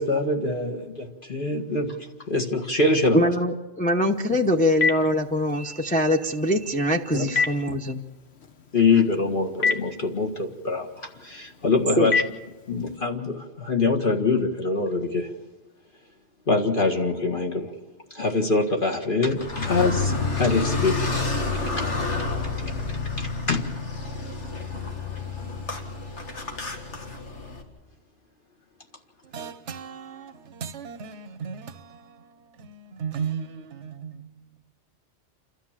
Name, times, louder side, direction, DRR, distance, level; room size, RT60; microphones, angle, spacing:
voice 1, 0.0-2.0 2.3-3.3 7.1-7.3 7.7-7.8 8.7-12.2 12.7-15.3 16.5-17.7 18.1-21.9 22.6-22.7 23.2-23.6, left 3 dB, 50° left, 2.0 m, -24 dB
voice 2, 3.1-8.0 12.0-12.1, left 1 dB, 10° left, 0.8 m, -23 dB
Telephone, 4.1-13.0, left 5 dB, 65° left, 1.5 m, -32 dB
Car, 19.4-27.6, left 4 dB, 85° left, 2.5 m, -29 dB
voice 3, 29.3-34.4, right 6 dB, 80° right, 1.2 m, -36 dB
29.0 x 13.0 x 7.4 m
omnidirectional pair, 1.2 m